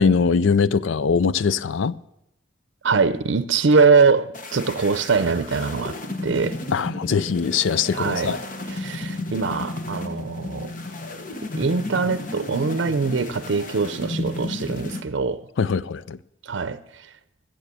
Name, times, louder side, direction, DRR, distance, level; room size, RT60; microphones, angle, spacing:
voice 1, 0.0-1.9 6.7-8.4 15.6-16.2, left 5 dB, 85° left, 0.4 m, -21 dB
voice 2, 2.8-6.0 6.2-6.6 7.9-8.4 8.7-10.7 11.5-15.4 16.4-16.8, right 4 dB, 75° right, 0.6 m, -22 dB
sound 1, 4.3-15.0, left 2 dB, 45° left, 1.1 m, -33 dB
14.5 x 7.8 x 6.7 m
head